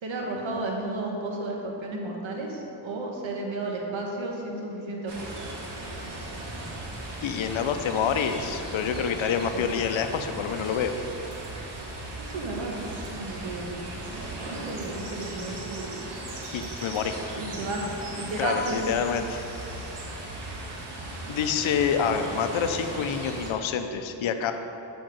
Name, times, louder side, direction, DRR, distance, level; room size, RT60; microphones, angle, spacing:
voice 1, 0.0-5.5 9.5-9.7 12.2-13.9 14.7-16.0 17.4-18.8, right 2 dB, 85° right, 0 dB, 1.2 m, -33 dB
sound 1, 5.1-23.5, right 2 dB, 65° right, 1.4 m, -37 dB
voice 2, 7.2-10.9 11.5-11.6 16.5-17.3 18.4-19.4 21.3-24.5, left 7 dB, 85° left, 8 dB, 0.6 m, -27 dB
7.6 x 5.1 x 5.1 m, 2.9 s
cardioid pair, 50°, 45 cm